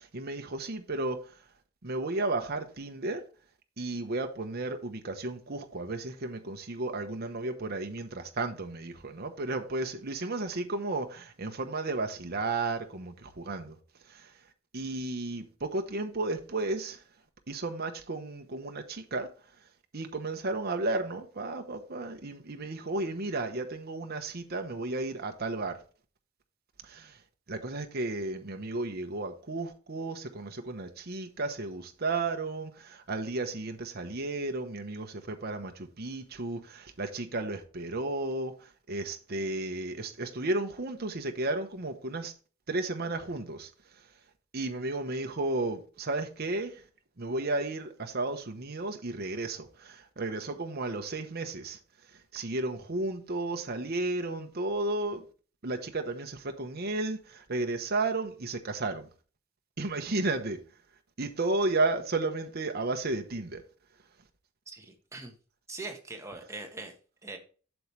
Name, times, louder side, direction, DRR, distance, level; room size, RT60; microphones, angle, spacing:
voice 1, 0.0-1.4 1.8-3.2 3.8-13.8 14.1-14.3 14.7-17.0 17.5-19.3 19.9-25.8 26.8-27.2 27.5-42.3 42.7-44.1 44.5-46.8 47.2-51.8 52.1-55.2 55.6-59.1 59.8-60.6 61.2-63.6, right 2 dB, 50° right, 1.0 m, -33 dB
voice 2, 64.7-65.3 65.7-66.9 67.2-67.4, right 3 dB, 15° right, 1.2 m, -42 dB
7.7 x 7.1 x 3.2 m
head